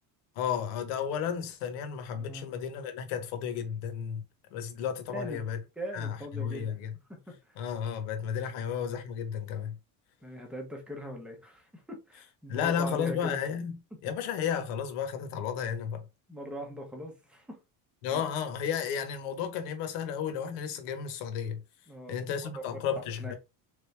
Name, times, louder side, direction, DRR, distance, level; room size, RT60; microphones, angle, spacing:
voice 1, 0.3-4.2 4.5-5.6 5.9-6.9 7.6-9.8 12.5-13.8 14.0-16.0 18.0-21.6 22.1-23.3, left 8 dB, 75° left, 1.2 m, -33 dB
voice 2, 2.2-2.6 5.1-5.4 5.8-6.7 7.1-7.6 8.6-8.7 10.2-13.4 16.3-17.6 18.1-18.2 21.9-22.2 23.2-23.3, equal, 5° right, 0.7 m, -41 dB
4.0 x 3.4 x 3.3 m
cardioid pair, 180°, 41 cm